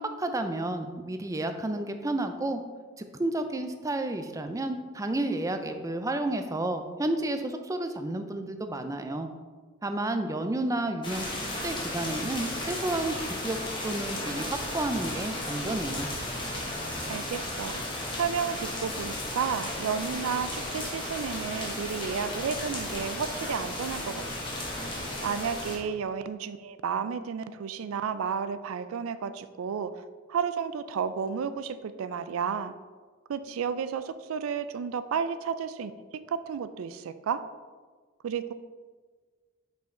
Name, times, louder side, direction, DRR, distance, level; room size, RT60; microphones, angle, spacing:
voice 1, 0.2-2.6 3.0-9.3 9.8-11.3 11.6-13.6 13.8-16.1, right 2 dB, 15° right, 7 dB, 0.4 m, -31 dB
sound 1, 11.0-25.8, left 1 dB, 25° left, 1.1 m, -34 dB
voice 2, 17.0-17.8 18.1-24.5 25.2-29.9 30.3-32.7 33.3-35.9 36.3-37.4 38.2-38.5, right 6 dB, 85° right, 12 dB, 0.4 m, -32 dB
5.6 x 5.1 x 3.7 m, 1.4 s
head